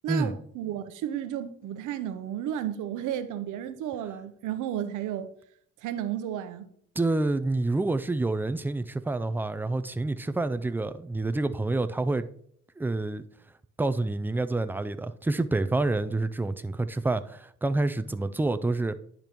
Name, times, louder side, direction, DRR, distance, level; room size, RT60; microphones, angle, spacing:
voice 1, 0.0-5.3 5.8-6.7, right 10 dB, 90° right, 0.7 m, -32 dB
voice 2, 7.0-12.3 12.8-13.2 13.8-19.0, right 2 dB, 5° right, 0.3 m, -28 dB
10.5 x 5.2 x 3.0 m
cardioid pair, 90°, 30 cm